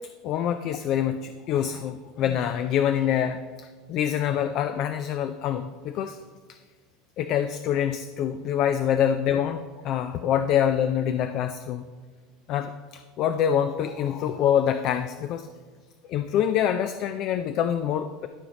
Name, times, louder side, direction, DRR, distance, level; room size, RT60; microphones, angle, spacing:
voice 1, 0.2-6.2 7.2-11.8 12.5-12.7 13.2-15.5 16.1-18.3, left 9 dB, 55° left, 10 dB, 0.4 m, -25 dB
12.5 x 4.9 x 4.0 m, 1.5 s
supercardioid pair, 100°, 0 cm